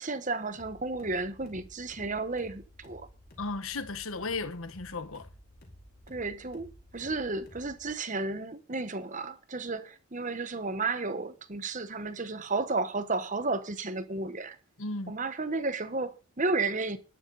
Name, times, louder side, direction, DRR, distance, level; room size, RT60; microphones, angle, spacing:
voice 1, 0.0-3.1 6.1-14.6 15.1-17.0, right 3 dB, 35° right, 1.1 m, -33 dB
sound 1, 0.5-7.9, equal, 45° left, 4.5 m, -53 dB
voice 2, 3.4-5.3 14.8-15.1, left 3 dB, 75° left, 1.3 m, -35 dB
12.5 x 12.0 x 4.0 m
head